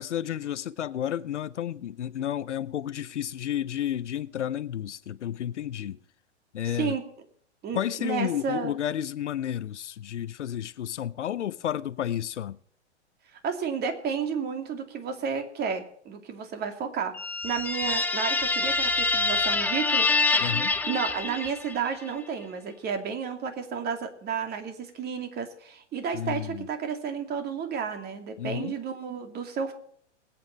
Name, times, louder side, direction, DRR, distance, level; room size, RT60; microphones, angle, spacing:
voice 1, 0.0-6.0 6.5-7.0 7.7-12.6 20.4-20.7 26.1-26.7 28.4-28.8, left 10 dB, 75° left, 0.7 m, -31 dB
voice 2, 7.6-8.8 13.4-17.2 17.4-20.1 20.3-20.5 20.9-29.7, right 6 dB, 25° right, 2.5 m, -32 dB
sound 1, 17.1-21.9, left 3 dB, 5° left, 0.9 m, -26 dB
21.0 x 8.9 x 4.6 m
hypercardioid pair, 115°, 35 cm